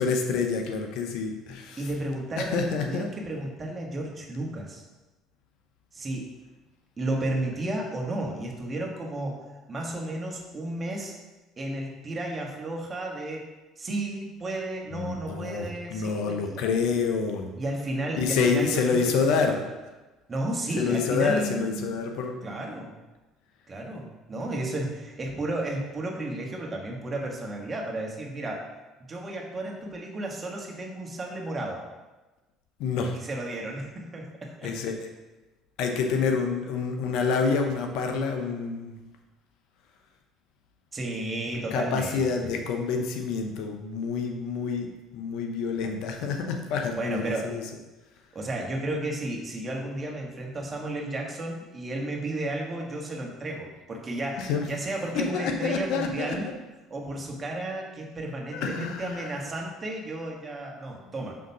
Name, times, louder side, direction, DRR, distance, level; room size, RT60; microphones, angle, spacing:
voice 1, 0.0-1.9 2.4-3.1 14.9-17.5 18.2-19.6 20.8-22.6 32.8-33.2 34.6-35.1 35.8-39.0 41.7-47.6 54.4-54.7 55.1-56.4 58.5-59.3, left 5 dB, 70° left, 4 dB, 0.8 m, -28 dB
voice 2, 1.8-4.8 5.9-6.3 7.0-11.1 11.6-13.5 13.8-16.6 17.5-19.5 20.3-22.0 22.4-22.9 23.7-28.6 29.1-31.8 33.1-34.7 40.9-42.5 47.0-47.5 48.3-56.5 56.9-61.4, right 1 dB, 30° right, 0 dB, 1.5 m, -33 dB
5.7 x 3.8 x 5.4 m, 1.1 s
hypercardioid pair, 70°, 0 cm